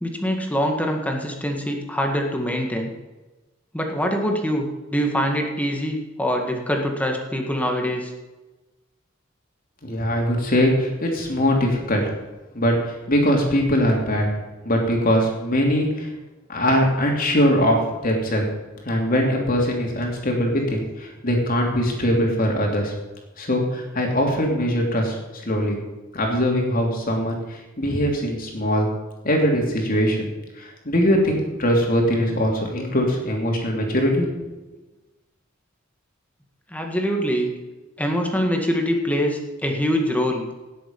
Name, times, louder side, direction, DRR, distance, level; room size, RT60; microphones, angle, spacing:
voice 1, 0.0-2.9 3.7-8.1 36.7-37.5 38.0-40.5, equal, 5° left, 2 dB, 1.8 m, -24 dB
voice 2, 9.8-12.1 12.5-14.3 14.6-16.1 16.5-17.8 18.0-18.5 18.8-22.9 23.4-25.1 25.4-25.8 26.1-28.9 29.2-34.2, equal, 45° left, 0 dB, 3.2 m, -21 dB
17.5 x 7.7 x 5.5 m, 1.1 s
head